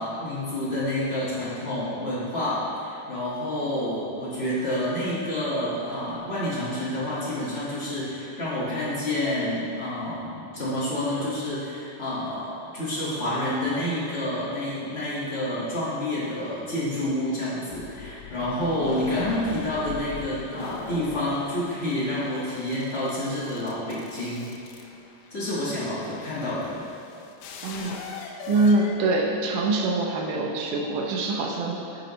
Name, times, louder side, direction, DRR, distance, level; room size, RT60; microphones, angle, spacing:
voice 1, 0.0-24.5 25.3-26.8, left 1 dB, 35° left, -10 dB, 1.0 m, -29 dB
sound 1, 3.5-4.2 5.7-6.3 8.4-9.0, equal, 55° right, 1.3 m, -47 dB
sound 2, 17.7-29.7, left 6 dB, 75° left, 1.9 m, -42 dB
voice 2, 27.6-28.0 28.5-31.8, right 2 dB, 80° right, 0 dB, 2.4 m, -24 dB
9.4 x 7.7 x 3.1 m, 2.7 s
omnidirectional pair, 3.8 m